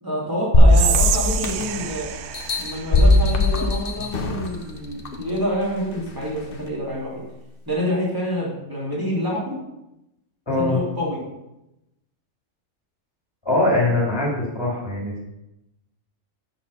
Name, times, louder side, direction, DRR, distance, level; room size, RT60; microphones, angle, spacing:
voice 1, 0.0-2.1 2.6-7.1 7.7-9.6 10.6-11.2, equal, 15° right, -5 dB, 2.9 m, -27 dB
sound 1, 0.5-1.8 2.3-4.5 5.1-5.2, left 2 dB, 45° left, 1.1 m, -17 dB
Whispering, 0.7-3.9, right 11 dB, 65° right, 0.8 m, -28 dB
voice 2, 10.5-10.8 13.4-15.3, left 2 dB, 20° left, -3 dB, 2.5 m, -22 dB
7.8 x 5.7 x 5.5 m, 0.91 s
omnidirectional pair, 1.4 m